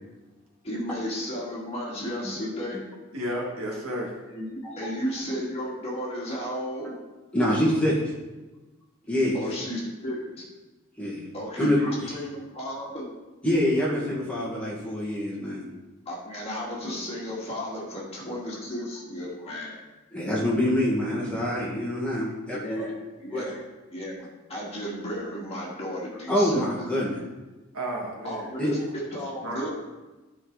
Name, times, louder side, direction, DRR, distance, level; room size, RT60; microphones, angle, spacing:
voice 1, 0.6-2.8 4.3-6.9 9.3-10.4 11.3-13.0 16.1-19.8 22.5-23.5 23.9-26.9 28.2-29.7, equal, 30° left, -5 dB, 2.3 m, -34 dB
voice 2, 3.1-4.1 27.7-28.5 29.4-29.7, equal, 75° right, -1 dB, 1.9 m, -32 dB
voice 3, 7.3-8.0 9.1-9.4 11.0-11.3 11.6-12.1 13.4-15.6 20.1-22.9 23.3-23.4 26.3-27.2 28.6-28.7 29.5-29.6, left 1 dB, 5° left, -5 dB, 1.8 m, -25 dB
11.5 x 5.0 x 4.0 m, 1.1 s
head